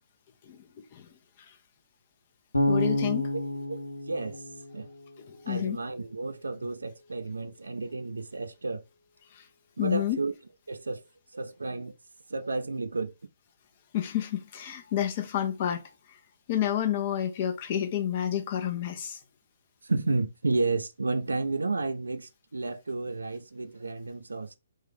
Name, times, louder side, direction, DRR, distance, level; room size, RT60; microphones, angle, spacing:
voice 1, 0.4-1.1 1.4-1.5 2.7-3.3 5.3-5.8 9.3-9.5 9.8-10.2 13.9-16.2 16.5-19.2, left 10 dB, 40° left, 0.9 m, -30 dB
Bass guitar, 2.5-5.6, left 1 dB, 85° left, 0.9 m, -29 dB
voice 2, 4.1-4.4 4.7-4.9 5.5-8.8 9.8-10.3 10.7-11.0 11.3-11.9 12.3-13.1 19.8-24.5, right 3 dB, 80° right, 0.4 m, -31 dB
3.8 x 2.5 x 3.3 m
figure-of-eight pair, 130°, 0 cm